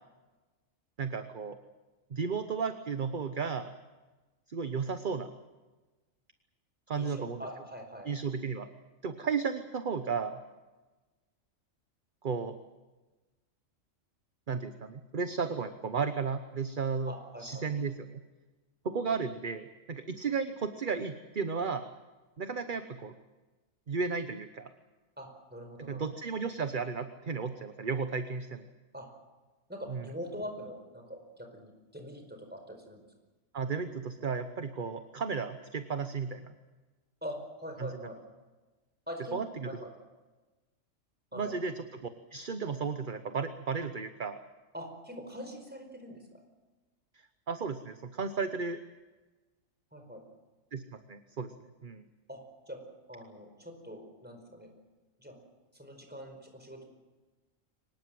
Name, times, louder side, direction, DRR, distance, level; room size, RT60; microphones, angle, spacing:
voice 1, 1.0-1.6 2.1-3.7 4.5-5.3 6.9-7.4 8.1-8.7 9.0-10.4 12.2-12.6 14.5-17.1 17.4-18.2 18.8-21.9 22.4-23.1 23.9-24.7 25.9-28.6 29.9-30.0 33.5-36.5 37.8-37.9 39.3-39.5 41.3-41.7 42.0-44.4 47.5-48.8 50.7-50.8 51.1-51.5 51.8-52.0, right 5 dB, 40° right, 9 dB, 1.1 m, -34 dB
voice 2, 6.9-8.1 17.0-17.7 25.2-26.1 28.9-29.1 29.7-33.1 37.2-38.2 39.1-39.4 39.6-39.9 41.3-41.5 44.7-46.4 49.9-50.2 52.3-52.4 52.7-52.8 53.1-54.7 55.2-55.4 55.7-56.8, equal, 5° right, 4 dB, 4.9 m, -43 dB
24.0 x 19.5 x 7.7 m, 1.2 s
omnidirectional pair, 1.4 m